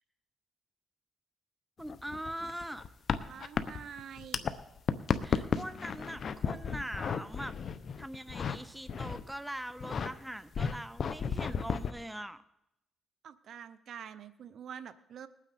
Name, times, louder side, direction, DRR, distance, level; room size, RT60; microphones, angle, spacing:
sound 1, 1.8-4.5 4.8-8.6 8.9-9.3 9.7-10.1 10.5-11.9, left 6 dB, 50° left, 0.8 m, -33 dB
voice 1, 1.8-2.9 5.2-7.6 8.0-12.4, right 1 dB, 5° right, 13 dB, 0.6 m, -42 dB
voice 2, 3.3-4.5 13.2-15.3, right 8 dB, 65° right, 13 dB, 0.7 m, -46 dB
20.5 x 9.1 x 4.2 m, 0.86 s
cardioid pair, 90°, 0 cm